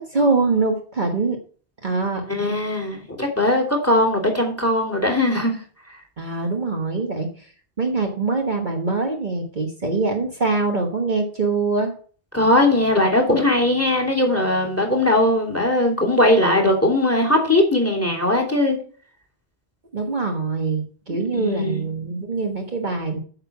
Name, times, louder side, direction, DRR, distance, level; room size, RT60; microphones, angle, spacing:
voice 1, 0.0-1.4 1.8-2.2 6.2-7.5 7.8-11.9 19.9-23.2, right 3 dB, 45° right, 2 dB, 1.4 m, -23 dB
voice 2, 2.3-5.6 12.3-18.8 21.1-21.8, left 1 dB, 10° left, 2 dB, 2.7 m, -19 dB
9.0 x 6.7 x 5.8 m, 0.43 s
omnidirectional pair, 1.1 m